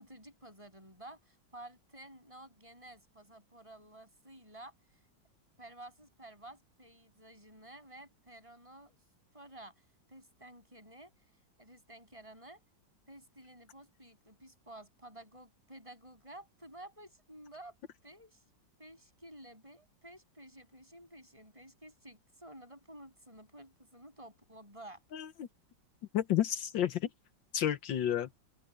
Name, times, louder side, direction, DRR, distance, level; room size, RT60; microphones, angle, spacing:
voice 1, 0.0-4.7 5.6-8.9 9.3-9.7 10.1-11.1 11.6-12.6 13.1-17.8 18.0-18.4 18.8-25.0, right 1 dB, 15° right, 8.1 m, -52 dB
voice 2, 25.1-25.5 26.1-27.0 27.5-28.3, left 11 dB, 75° left, 1.7 m, -31 dB
open air
omnidirectional pair, 2.0 m